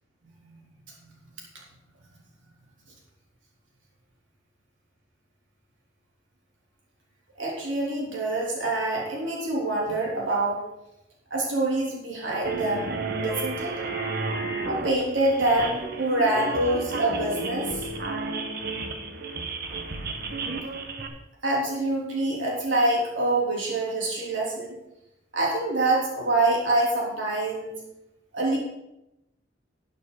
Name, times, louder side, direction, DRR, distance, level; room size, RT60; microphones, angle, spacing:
voice 1, 7.4-10.6 11.3-12.9 13.1-13.7 14.7-17.8 19.7-19.8 21.4-24.7 25.3-27.7 28.3-28.6, right 2 dB, 90° right, -3 dB, 3.3 m, -25 dB
sound 1, 12.4-21.1, right 3 dB, 60° right, 1.2 m, -32 dB
12.5 x 9.1 x 4.0 m, 0.89 s
head